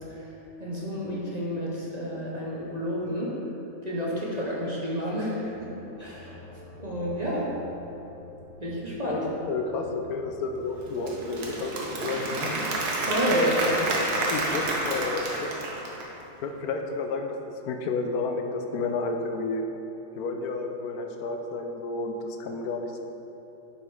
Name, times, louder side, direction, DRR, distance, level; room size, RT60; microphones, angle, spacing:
voice 1, 0.6-3.4 3.8-5.7 6.0-7.5 8.6-9.3 13.0-13.6, equal, 30° right, -5 dB, 1.0 m, -30 dB
sound 1, 5.4-11.7, left 2 dB, 10° right, 1.5 m, -49 dB
voice 2, 9.0-11.7 12.0-12.5 13.3-14.0 14.3-15.3 16.4-17.3 17.6-19.6 20.2-23.0, left 3 dB, 80° left, 4 dB, 1.1 m, -31 dB
Applause / Crowd, 10.8-16.2, right 2 dB, 85° right, 1.6 m, -29 dB
7.6 x 5.0 x 4.9 m, 3.0 s
omnidirectional pair, 1.6 m